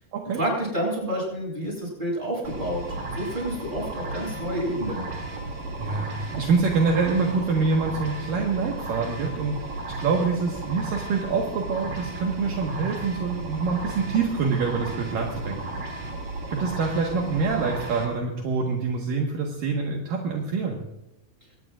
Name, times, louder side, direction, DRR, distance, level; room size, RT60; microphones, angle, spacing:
voice 1, 0.3-5.1, right 1 dB, 10° right, -2 dB, 7.9 m, -29 dB
sound 1, 2.4-18.1, right 2 dB, 50° right, 3.7 m, -34 dB
voice 2, 5.7-15.6 16.5-20.8, right 4 dB, 65° right, 0 dB, 3.0 m, -26 dB
23.5 x 19.0 x 2.5 m, 0.85 s
omnidirectional pair, 4.5 m